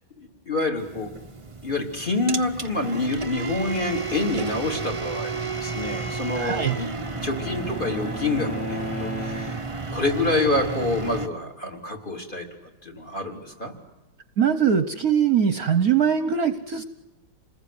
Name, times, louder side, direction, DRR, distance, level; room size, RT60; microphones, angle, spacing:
voice 1, 0.2-1.1 1.6-6.9 7.2-9.6 9.9-12.5 12.8-13.7, left 2 dB, 25° left, 6 dB, 3.9 m, -27 dB
sound 1, 0.8-11.3, right 4 dB, 20° right, 0.9 m, -32 dB
Bowed string instrument, 6.0-9.9, equal, 75° left, 4.0 m, -36 dB
voice 2, 6.3-6.8 14.4-16.8, right 8 dB, 55° right, 11 dB, 1.4 m, -21 dB
28.0 x 20.5 x 9.6 m, 1.1 s
omnidirectional pair, 2.1 m